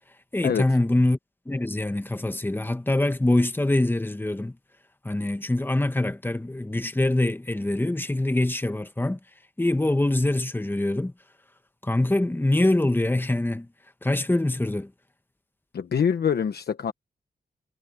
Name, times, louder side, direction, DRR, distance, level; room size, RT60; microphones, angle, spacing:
voice 1, 0.3-1.2 1.4-4.5 5.0-9.2 9.6-11.1 11.8-13.7 14.0-14.9, left 1 dB, 10° left, 1.4 m, -24 dB
voice 2, 15.7-16.9, left 7 dB, 75° left, 1.1 m, -24 dB
wide cardioid pair, 100°, 17 cm